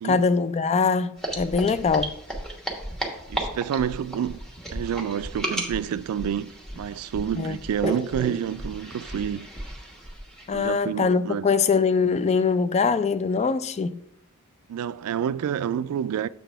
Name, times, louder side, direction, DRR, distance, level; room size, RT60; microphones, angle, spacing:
voice 1, 0.0-2.2 7.4-7.6 10.5-14.0, left 5 dB, 30° left, 0.3 m, -23 dB
sound 1, 1.2-10.7, right 1 dB, ahead, 1.1 m, -34 dB
voice 2, 3.3-4.4 4.7-9.5 10.5-11.5 14.7-16.3, right 8 dB, 70° right, 0.3 m, -29 dB
7.0 x 4.0 x 5.5 m
head